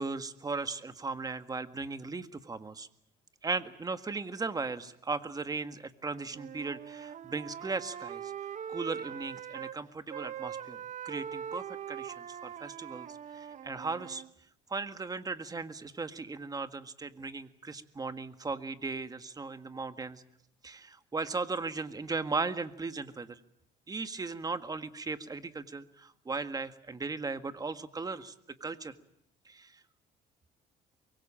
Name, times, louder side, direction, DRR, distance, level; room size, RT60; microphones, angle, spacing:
voice 1, 0.0-2.9 3.4-8.3 8.7-10.8 11.1-13.1 13.3-14.2 14.7-20.2 20.6-23.4 23.9-28.3 28.6-29.0 29.5-29.8, right 4 dB, 20° right, 10 dB, 1.7 m, -37 dB
Wind instrument woodwind instrument, 6.3-9.8 10.1-14.3, right 9 dB, 45° right, 1.1 m, -42 dB
24.0 x 22.5 x 8.8 m, 0.72 s
cardioid pair, 110°, 17 cm